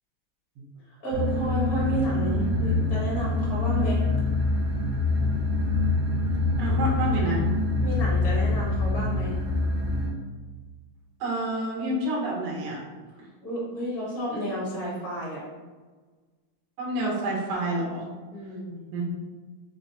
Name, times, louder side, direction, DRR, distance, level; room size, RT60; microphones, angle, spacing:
voice 1, 1.0-4.0 7.8-9.4 13.4-15.4 18.3-18.8, equal, 85° left, -6 dB, 0.8 m, -31 dB
sound 1, 1.1-10.1, left 2 dB, 55° right, 1.1 m, -25 dB
voice 2, 6.6-7.4 11.2-12.8 16.8-18.0 18.9-19.0, right 1 dB, 70° right, -3 dB, 1.5 m, -28 dB
5.0 x 3.8 x 2.8 m, 1.4 s
omnidirectional pair, 4.1 m